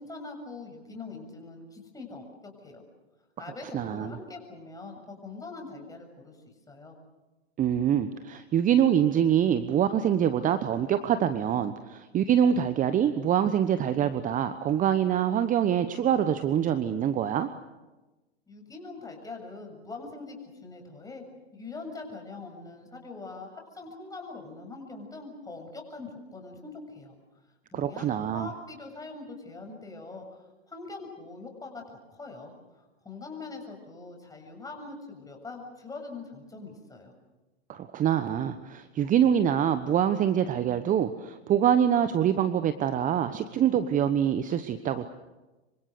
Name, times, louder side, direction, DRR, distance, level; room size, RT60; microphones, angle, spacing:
voice 1, 0.0-2.8 3.4-6.4 6.7-7.0 18.5-21.2 21.5-27.1 27.7-28.1 28.3-37.1, left 3 dB, 10° left, 3 dB, 7.1 m, -43 dB
voice 2, 3.7-4.2 7.6-17.5 27.7-28.5 37.7-45.1, right 9 dB, 25° right, 11 dB, 1.1 m, -25 dB
26.5 x 24.5 x 6.7 m, 1.1 s
hypercardioid pair, 105°, 33 cm